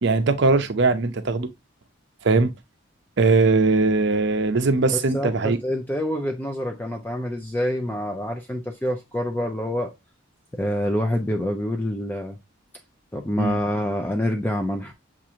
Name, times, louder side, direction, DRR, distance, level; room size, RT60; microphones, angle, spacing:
voice 1, 0.0-1.5 2.2-2.5 3.2-5.6 13.4-13.6, right 3 dB, 55° right, 0.6 m, -20 dB
voice 2, 4.9-9.9 10.5-12.4 13.1-14.9, left 1 dB, 10° left, 0.4 m, -26 dB
7.3 x 2.5 x 2.8 m
head